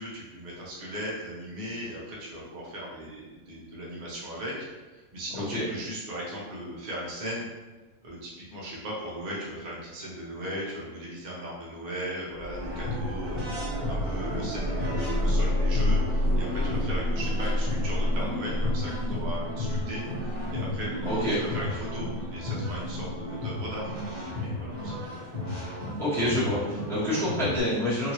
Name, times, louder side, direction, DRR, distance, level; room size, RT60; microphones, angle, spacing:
voice 1, 0.0-4.7 4.9-7.5 8.0-25.2, equal, 40° right, -5 dB, 0.7 m, -38 dB
sound 1, 12.4-25.2 27.6-27.7, left 1 dB, 85° right, 1.1 m, -30 dB
sound 2, 12.5-27.6, left 1 dB, 25° right, 1.1 m, -35 dB
voice 2, 26.0-28.1, equal, ahead, -12 dB, 1.1 m, -27 dB
2.9 x 2.8 x 2.8 m, 1.2 s
omnidirectional pair, 1.5 m